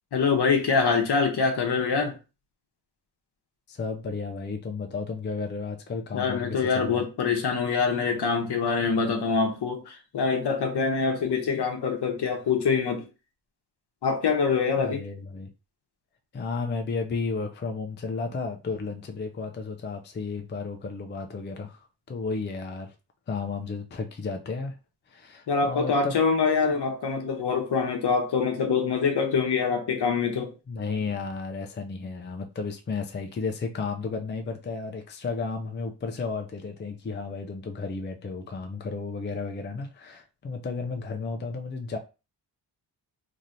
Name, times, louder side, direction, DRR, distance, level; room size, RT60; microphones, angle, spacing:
voice 1, 0.1-2.2 6.1-13.0 14.0-15.0 25.5-30.5, left 5 dB, 65° left, 0.9 m, -25 dB
voice 2, 3.7-7.0 14.8-15.5 16.3-22.9 23.3-24.7 25.1-26.2 30.7-42.0, left 4 dB, 25° left, 0.4 m, -33 dB
3.1 x 2.7 x 2.6 m
wide cardioid pair, 100°, 43 cm